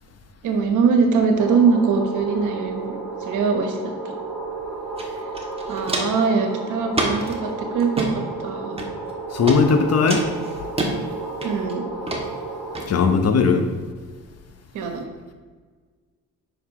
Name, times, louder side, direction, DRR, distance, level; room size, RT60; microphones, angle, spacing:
voice 1, 0.4-2.9 3.2-3.8 4.0-4.1 5.7-8.8 11.4-11.8 14.7-15.0, right 5 dB, 85° right, 4 dB, 1.3 m, -22 dB
sound 1, 1.4-12.9, right 3 dB, ahead, 2.1 m, -32 dB
Walk footsteps, 5.0-5.1 5.3-6.3 6.9-7.3 7.8-8.1 8.8-9.1 9.5-9.6 10.1-10.9 11.4-11.7 12.1-12.2 12.8-12.9, right 2 dB, 20° right, 1.5 m, -26 dB
voice 2, 9.3-10.3 12.9-13.7, left 5 dB, 55° left, 6 dB, 1.0 m, -18 dB
9.1 x 5.8 x 3.2 m, 1.5 s
cardioid pair, 90°, 30 cm